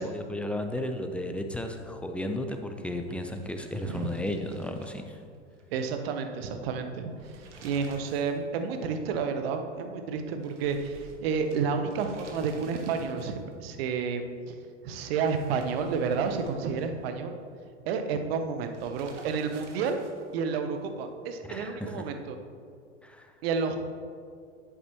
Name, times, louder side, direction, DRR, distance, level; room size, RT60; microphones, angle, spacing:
voice 1, 0.0-5.2 21.5-22.0 23.0-23.3, left 1 dB, 5° left, 5 dB, 0.6 m, -34 dB
sound 1, 3.1-5.6 5.9-6.0 7.0-8.4 8.7-8.8 10.4-13.5 15.1-17.1 18.7-20.4, right 3 dB, 70° right, 1.4 m, -51 dB
voice 2, 5.7-14.6 14.8-17.3 17.8-20.0 20.3-22.4 23.4-23.8, right 5 dB, 55° right, 6 dB, 1.0 m, -30 dB
10.5 x 8.6 x 3.0 m, 2.2 s
figure-of-eight pair, 85°, 37 cm